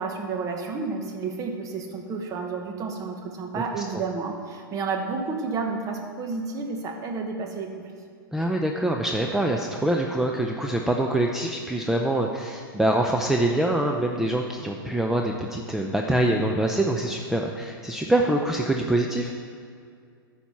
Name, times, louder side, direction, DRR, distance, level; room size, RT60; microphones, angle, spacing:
voice 1, 0.0-7.7, right 4 dB, 30° right, 2 dB, 1.2 m, -31 dB
voice 2, 8.3-19.3, right 1 dB, 5° right, 1 dB, 0.5 m, -24 dB
10.0 x 4.3 x 7.0 m, 2.3 s
hypercardioid pair, 115°, 12 cm